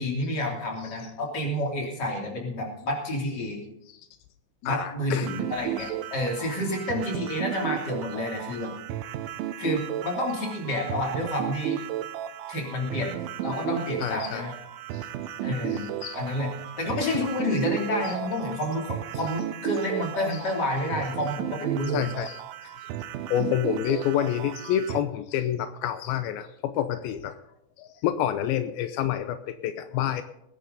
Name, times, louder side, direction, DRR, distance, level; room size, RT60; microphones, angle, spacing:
voice 1, 0.0-3.6 4.6-8.7 9.6-11.8 12.5-13.1 13.4-14.5 15.4-16.5 16.8-22.1, left 1 dB, 25° left, 0 dB, 3.0 m, -29 dB
voice 2, 4.7-5.3 14.0-14.5 14.9-15.0 15.7-16.2 18.0-18.1 20.3-20.4 21.9-22.4 23.3-27.4 27.8-30.2, left 10 dB, 90° left, 10 dB, 2.1 m, -28 dB
sound 1, 5.2-25.0, right 11 dB, 85° right, 2.1 m, -34 dB
20.0 x 10.5 x 4.0 m, 0.78 s
omnidirectional pair, 5.2 m